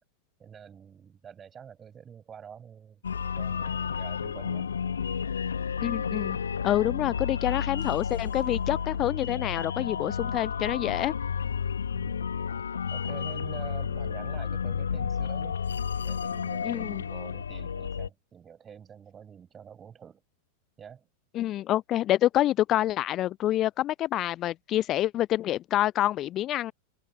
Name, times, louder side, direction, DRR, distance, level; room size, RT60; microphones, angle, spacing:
voice 1, 0.4-3.0 3.4-4.7 11.9-12.3 12.9-15.6 16.0-20.2 20.8-21.1, right 7 dB, 20° right, 6.3 m, -46 dB
sound 1, 3.0-18.1, left 7 dB, 70° left, 3.0 m, -31 dB
voice 2, 5.8-6.4 6.6-11.1 16.6-17.0 21.3-26.7, left 13 dB, 35° left, 0.5 m, -27 dB
figure-of-eight pair, 90°, 0 cm